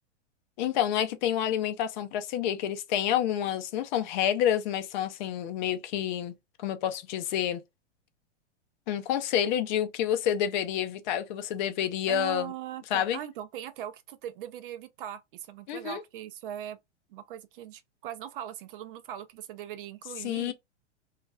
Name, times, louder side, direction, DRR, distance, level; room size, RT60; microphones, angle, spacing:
voice 1, 0.6-6.3 6.6-7.6 8.9-12.5 12.9-13.2 15.7-16.0 20.2-20.5, left 10 dB, 40° left, 0.5 m, -28 dB
voice 2, 12.1-16.8 17.1-20.5, right 11 dB, 50° right, 0.5 m, -40 dB
3.0 x 2.4 x 2.3 m
hypercardioid pair, 125°, 36 cm